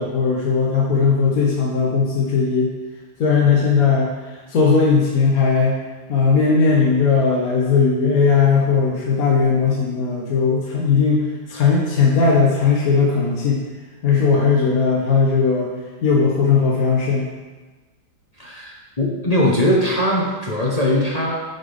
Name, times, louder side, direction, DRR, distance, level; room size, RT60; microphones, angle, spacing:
voice 1, 0.0-2.7 3.2-5.8 6.1-13.6 14.0-15.8 16.0-17.3, left 5 dB, 55° left, -3 dB, 1.2 m, -18 dB
voice 2, 18.4-21.4, left 1 dB, 30° left, -4 dB, 0.8 m, -20 dB
9.6 x 5.7 x 3.4 m, 1.3 s
omnidirectional pair, 2.0 m